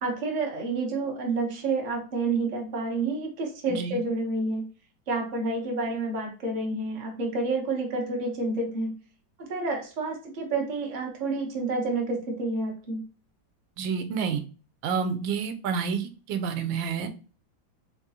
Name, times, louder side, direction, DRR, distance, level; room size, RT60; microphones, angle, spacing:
voice 1, 0.0-4.6 5.1-8.9 9.4-13.0, right 3 dB, 40° right, 0.7 m, -29 dB
voice 2, 13.8-14.4 14.8-17.1, right 6 dB, 80° right, 1.3 m, -29 dB
3.8 x 3.6 x 2.8 m
omnidirectional pair, 2.1 m